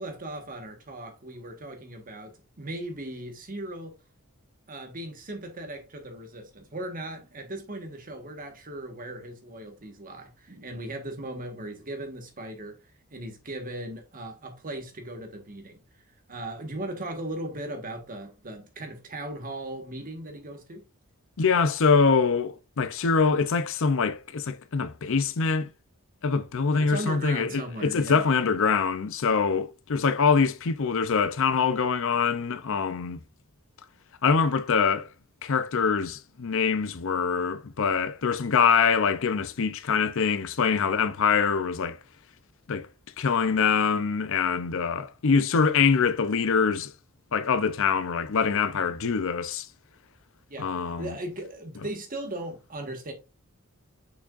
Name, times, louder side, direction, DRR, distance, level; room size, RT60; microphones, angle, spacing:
voice 1, 0.0-3.9 4.7-12.8 13.1-15.8 16.3-20.8 26.7-28.2 50.5-53.1, right 1 dB, 40° right, 1.5 m, -38 dB
voice 2, 21.4-25.7 26.2-33.2 34.2-35.1 35.4-42.0 42.7-42.9 43.2-46.9 47.3-49.7 50.6-51.1, left 5 dB, 65° left, 0.6 m, -24 dB
6.2 x 6.1 x 2.5 m
head